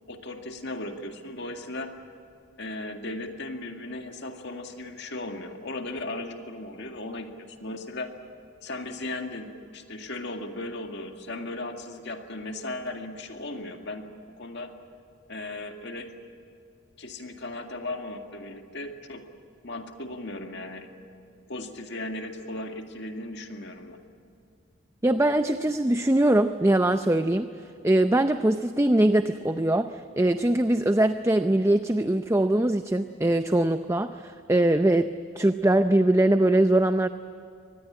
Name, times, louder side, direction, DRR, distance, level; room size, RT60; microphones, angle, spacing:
voice 1, 0.1-1.9 2.6-8.1 8.6-14.0 14.4-14.7 15.3-16.1 17.0-19.2 19.6-20.9 21.5-24.0, left 2 dB, 55° left, 5 dB, 2.1 m, -36 dB
voice 2, 25.0-27.5 27.8-37.1, right 1 dB, 15° right, 9 dB, 0.5 m, -22 dB
24.5 x 20.0 x 8.7 m, 2.6 s
head